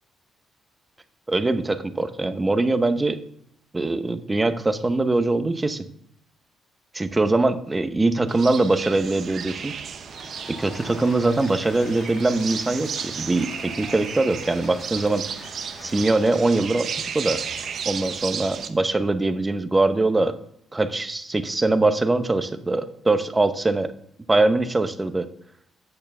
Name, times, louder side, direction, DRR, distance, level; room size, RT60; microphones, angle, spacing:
voice 1, 1.3-3.2 3.7-5.8 6.9-9.7 10.5-15.2 15.8-16.9 17.1-17.4 17.8-20.3 20.7-23.9 24.3-25.3, right 2 dB, 20° right, 10 dB, 0.9 m, -22 dB
sound 1, 8.3-18.7, right 7 dB, 60° right, 0.8 m, -34 dB
Applause, 10.0-17.0, left 4 dB, 60° left, 1.4 m, -45 dB
8.9 x 6.6 x 5.4 m, 0.71 s
cardioid pair, 90°, 0 cm